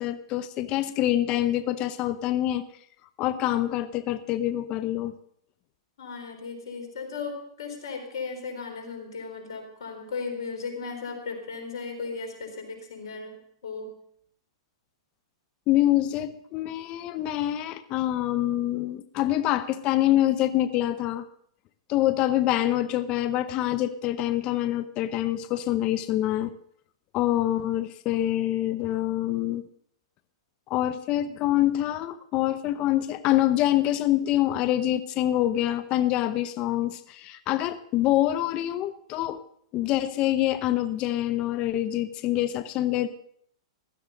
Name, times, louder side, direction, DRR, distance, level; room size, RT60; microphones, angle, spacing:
voice 1, 0.0-2.6 3.2-5.1 15.7-21.2 21.9-26.5 27.1-29.6 30.7-39.4 39.7-43.1, left 13 dB, 35° left, 12 dB, 0.8 m, -25 dB
voice 2, 6.0-13.9, left 4 dB, 70° left, 5 dB, 4.0 m, -36 dB
16.0 x 12.5 x 3.9 m, 0.67 s
hypercardioid pair, 120°, 3 cm